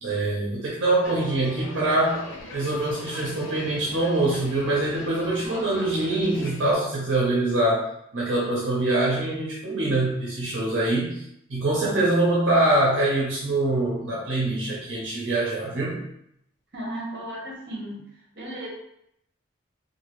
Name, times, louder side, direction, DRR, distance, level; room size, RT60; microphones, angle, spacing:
voice 1, 0.0-2.2 2.5-11.2 11.5-16.0, right 2 dB, 70° right, -6 dB, 0.7 m, -24 dB
sound 1, 1.0-6.7, left 2 dB, 70° left, 0.6 m, -40 dB
sound 2, 1.4-1.9 2.1-2.4 2.7-3.1 3.4-3.6 4.0-5.0 5.2-6.2, right 2 dB, 5° right, 0.3 m, -43 dB
voice 2, 16.7-18.7, right 1 dB, 50° right, -3 dB, 1.0 m, -35 dB
2.9 x 2.5 x 3.0 m, 0.75 s
head